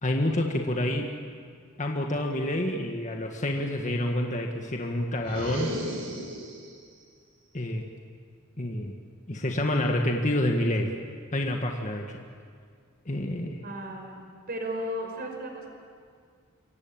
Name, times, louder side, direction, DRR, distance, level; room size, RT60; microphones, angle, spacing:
voice 1, 0.0-1.1 1.8-5.8 7.5-7.8 8.6-8.9 9.3-10.9 11.3-12.2 13.0-13.6, left 1 dB, 40° left, 1 dB, 1.8 m, -28 dB
sound 1, 5.2-6.8, equal, 80° right, 5.2 m, -35 dB
voice 2, 13.6-14.2 14.5-15.7, equal, 50° right, 3 dB, 5.3 m, -34 dB
27.5 x 23.0 x 8.9 m, 2.1 s
head